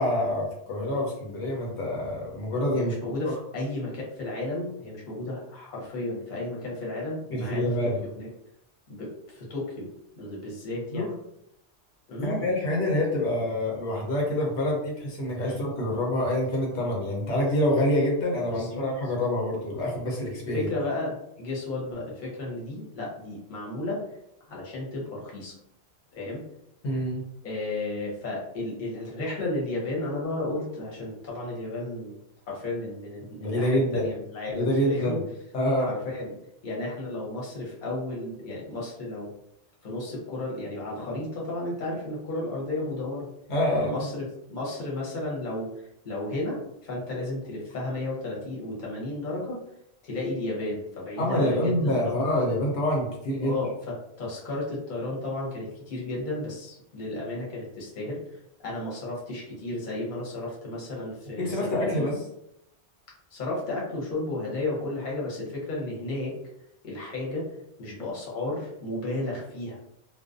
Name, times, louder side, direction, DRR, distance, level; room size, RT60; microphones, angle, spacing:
voice 1, 0.0-2.9 7.3-8.0 10.9-11.1 12.2-20.7 26.8-27.2 33.4-34.0 34.5-35.2 35.5-35.9 43.5-44.1 51.2-53.6 61.4-62.2, left 1 dB, 85° left, -2 dB, 1.0 m, -26 dB
voice 2, 2.7-8.3 8.9-9.9 10.2-11.1 12.1-12.5 15.5-15.6 18.5-18.9 20.5-24.0 24.5-25.5 26.1-26.4 27.4-32.2 32.5-35.2 35.8-36.4 36.6-39.3 39.8-43.3 43.8-49.6 50.0-52.3 53.4-58.2 58.6-62.2 63.3-66.3 66.8-67.5 67.8-69.8, left 2 dB, 50° left, -4 dB, 0.9 m, -33 dB
2.4 x 2.2 x 2.4 m, 0.77 s
omnidirectional pair, 1.1 m